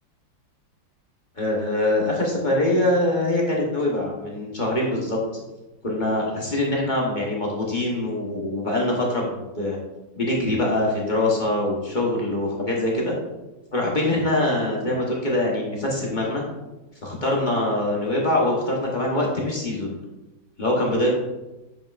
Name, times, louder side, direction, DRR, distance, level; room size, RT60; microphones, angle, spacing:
voice 1, 1.4-5.4 5.8-9.8 10.2-13.2 13.7-16.4 17.0-19.9 20.6-21.1, left 1 dB, 40° left, -3 dB, 0.7 m, -23 dB
7.7 x 5.5 x 2.4 m, 1.0 s
omnidirectional pair, 2.2 m